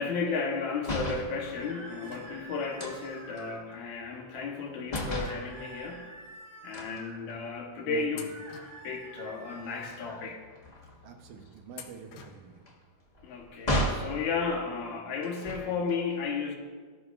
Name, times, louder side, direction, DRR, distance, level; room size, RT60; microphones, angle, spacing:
voice 1, 0.0-6.1 6.6-8.3 8.8-10.4 13.2-16.6, left 5 dB, 75° left, 2 dB, 2.5 m, -33 dB
sound 1, 0.8-1.3 2.8-4.6 4.9-5.4 6.7-7.8 8.3-8.5 8.8-14.1 15.2-15.9, equal, 45° left, 0.5 m, -36 dB
sound 2, 1.3-3.6 5.0-7.2 8.1-10.2, right 2 dB, 30° right, 3.6 m, -47 dB
sound 3, 2.0-2.9 3.7-3.8 4.9-6.3 6.6-6.7 7.5-7.7 8.1-9.4 9.9-10.0 11.7-12.7 13.0-13.1 14.3-14.4 14.7-14.8, left 8 dB, 90° left, 2.4 m, -50 dB
voice 2, 7.8-8.3 11.0-12.6, right 6 dB, 75° right, 4 dB, 2.4 m, -45 dB
17.5 x 12.0 x 2.5 m, 1.5 s
omnidirectional pair, 3.5 m